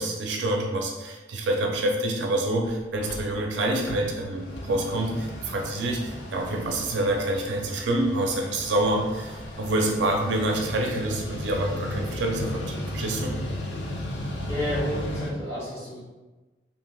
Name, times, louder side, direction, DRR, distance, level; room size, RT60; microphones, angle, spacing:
voice 1, 0.0-13.3, right 1 dB, 75° right, 1 dB, 0.4 m, -27 dB
Mechanical fan, 2.3-2.4 2.7-2.8 2.9-15.3, left 1 dB, 80° left, 0.5 m, -35 dB
voice 2, 14.5-16.0, equal, 15° left, -10 dB, 1.4 m, -31 dB
3.4 x 2.5 x 2.3 m, 1.2 s
head